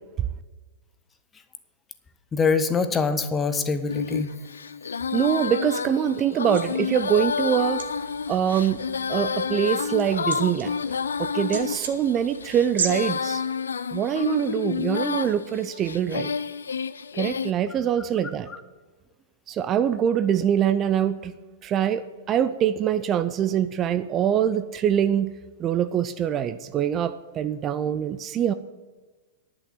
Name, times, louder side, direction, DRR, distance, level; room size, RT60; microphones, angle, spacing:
voice 1, 2.3-4.3, left 5 dB, 20° left, 10 dB, 0.9 m, -24 dB
Female singing, 3.9-17.5, left 6 dB, 75° left, 0.4 m, -29 dB
voice 2, 5.1-7.8 8.3-8.8 9.1-10.7 11.2-13.4 13.9-16.3 17.1-18.5 19.5-21.3 21.6-25.3 25.6-28.5, right 9 dB, 30° right, 12 dB, 0.5 m, -24 dB
sound 1, 6.5-12.9, right 6 dB, 70° right, 1.2 m, -37 dB
10.5 x 6.2 x 8.5 m, 1.3 s
figure-of-eight pair, 100°, 0 cm